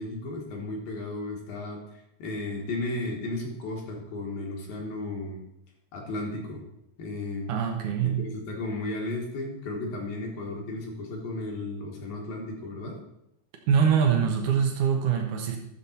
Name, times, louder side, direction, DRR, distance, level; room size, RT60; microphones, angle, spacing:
voice 1, 0.0-5.4 5.9-6.6 7.0-7.5 8.0-13.0, left 2 dB, 65° left, 0 dB, 3.0 m, -34 dB
voice 2, 7.5-8.2 13.7-15.6, right 7 dB, 70° right, 2 dB, 1.9 m, -24 dB
12.5 x 7.0 x 4.3 m, 0.81 s
omnidirectional pair, 5.1 m